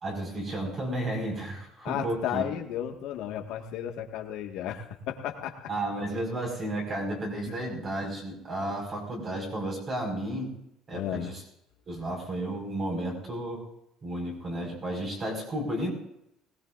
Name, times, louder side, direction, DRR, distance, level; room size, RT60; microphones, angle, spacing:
voice 1, 0.0-2.4 5.7-10.5 10.9-11.4 11.9-13.6 14.0-15.9, right 1 dB, 30° right, 0 dB, 5.0 m, -32 dB
voice 2, 1.8-5.7 7.5-7.6 10.9-11.3, left 10 dB, 70° left, 3 dB, 1.6 m, -34 dB
21.0 x 18.5 x 2.5 m, 0.80 s
cardioid pair, 165°, 0 cm